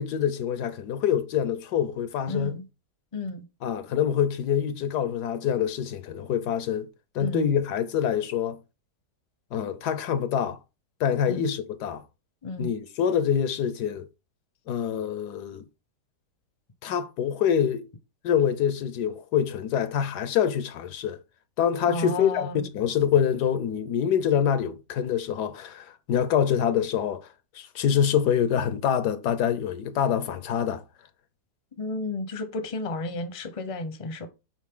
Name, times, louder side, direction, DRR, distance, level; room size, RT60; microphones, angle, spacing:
voice 1, 0.0-2.5 3.6-6.9 7.1-8.6 9.5-10.6 11.0-12.0 12.6-14.1 14.7-15.7 16.8-17.8 18.2-21.2 21.6-27.3 27.5-30.8, left 8 dB, 75° left, 1.3 m, -25 dB
voice 2, 2.3-2.6 3.1-3.4 7.2-7.4 11.3-11.5 12.4-12.7 21.9-22.6 31.8-34.3, left 2 dB, 25° left, 0.7 m, -32 dB
7.3 x 5.2 x 3.8 m
omnidirectional pair, 1.8 m